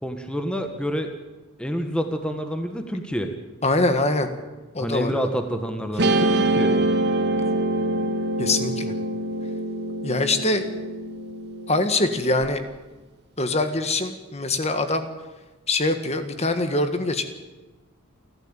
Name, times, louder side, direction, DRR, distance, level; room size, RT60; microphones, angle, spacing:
voice 1, 0.0-1.1 1.6-3.3 4.8-6.7, equal, 5° left, 6 dB, 1.4 m, -28 dB
voice 2, 3.6-4.3 4.7-5.3 8.4-8.9 10.0-10.6 11.7-12.6 13.4-15.1 15.7-17.3, left 2 dB, 30° left, 8 dB, 1.6 m, -23 dB
Guitar, 6.0-12.4, right 2 dB, 50° right, 1.8 m, -25 dB
29.0 x 12.5 x 8.9 m, 1.2 s
head